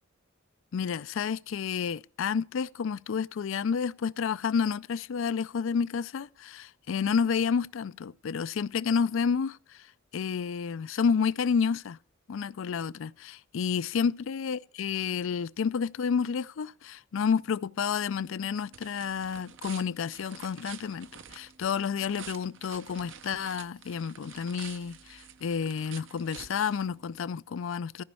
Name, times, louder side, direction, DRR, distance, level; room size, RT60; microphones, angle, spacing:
voice 1, 0.7-9.8 10.1-12.0 12.3-28.0, left 6 dB, 70° left, 0.4 m, -30 dB
sound 1, 17.9-27.3, right 8 dB, 65° right, 0.8 m, -49 dB
14.5 x 5.3 x 6.9 m
head